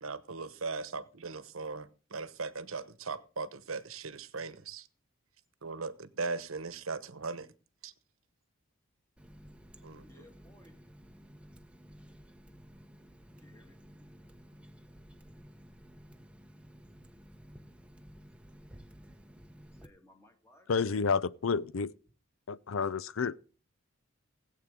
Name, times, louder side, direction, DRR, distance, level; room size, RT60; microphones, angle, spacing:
voice 1, 0.0-4.9 5.6-7.5 7.8-7.9 9.8-10.2, right 4 dB, 80° right, 1.1 m, -39 dB
Water tap faucet, 9.2-19.9, equal, 5° right, 0.8 m, -54 dB
voice 2, 9.9-10.8 13.4-13.9 19.7-20.7, left 1 dB, 15° left, 2.1 m, -60 dB
voice 3, 20.7-21.9 22.5-23.4, left 5 dB, 75° left, 0.5 m, -30 dB
17.5 x 8.4 x 3.7 m
head